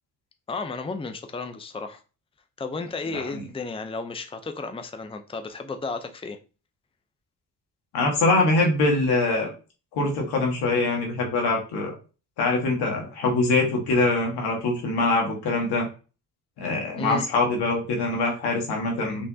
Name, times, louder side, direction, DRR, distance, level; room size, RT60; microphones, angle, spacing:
voice 1, 0.5-2.0 2.6-6.4 17.0-17.2, left 3 dB, 15° left, 0.6 m, -33 dB
voice 2, 7.9-9.5 9.9-11.9 12.4-15.9 16.6-19.3, left 2 dB, 85° left, 1.7 m, -23 dB
5.3 x 3.5 x 2.8 m
cardioid pair, 70°, 39 cm